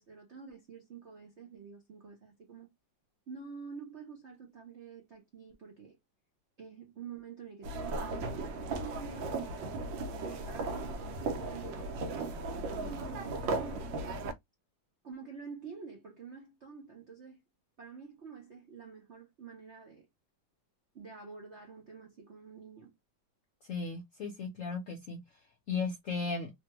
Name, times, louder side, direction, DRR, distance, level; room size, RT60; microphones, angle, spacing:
voice 1, 0.0-2.7 3.3-6.0 6.6-13.9 15.0-17.4 17.8-20.1 20.9-22.9, right 5 dB, 60° right, 0.7 m, -48 dB
sound 1, 7.6-14.3, right 3 dB, 85° right, 1.4 m, -36 dB
voice 2, 23.7-25.2 25.7-26.5, left 4 dB, 65° left, 0.8 m, -35 dB
3.3 x 2.2 x 2.8 m
omnidirectional pair, 2.0 m